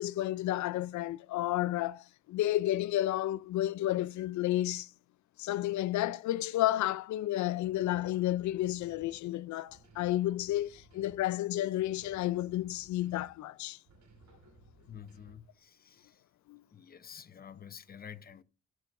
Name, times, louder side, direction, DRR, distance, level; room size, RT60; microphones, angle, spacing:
voice 1, 0.0-4.9 5.4-13.8 16.5-16.6, left 14 dB, 70° left, 0.5 m, -31 dB
sound 1, 7.6-9.3 9.7-11.4 11.8-13.5 13.9-15.6, right 2 dB, 65° right, 3.1 m, -60 dB
voice 2, 14.9-16.2 16.7-18.4, left 8 dB, 30° left, 0.6 m, -49 dB
18.0 x 6.0 x 2.6 m
cardioid pair, 90°, 30 cm